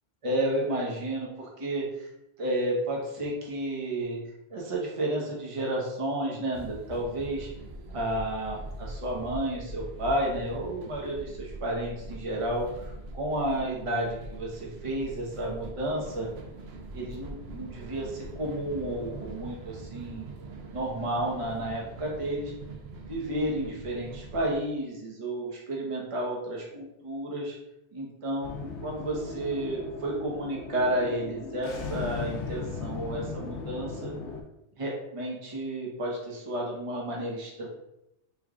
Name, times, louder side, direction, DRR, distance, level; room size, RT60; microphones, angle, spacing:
voice 1, 0.2-2.1 2.4-4.2 4.5-7.5 7.9-16.3 16.9-20.2 20.7-22.5 23.1-27.6 27.9-34.1 34.8-37.7, right 1 dB, 30° right, -2 dB, 0.8 m, -31 dB
sound 1, 6.5-24.6, right 2 dB, 70° right, 0.8 m, -42 dB
sound 2, 28.4-34.4, left 4 dB, 80° left, 0.9 m, -38 dB
3.4 x 2.2 x 3.6 m, 0.86 s
omnidirectional pair, 1.2 m